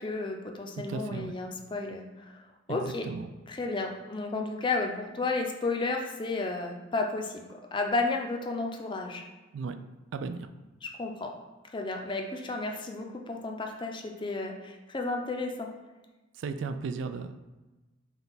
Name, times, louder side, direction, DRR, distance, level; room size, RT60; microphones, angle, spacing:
voice 1, 0.0-2.4 2.7-3.1 3.5-9.2 10.8-11.3 11.7-15.7, left 3 dB, 25° left, 3 dB, 0.5 m, -32 dB
voice 2, 0.8-1.3 2.7-3.3 9.5-9.8 10.1-10.5 16.4-17.4, right 5 dB, 70° right, 9 dB, 0.3 m, -35 dB
5.4 x 2.3 x 3.9 m, 1.2 s
head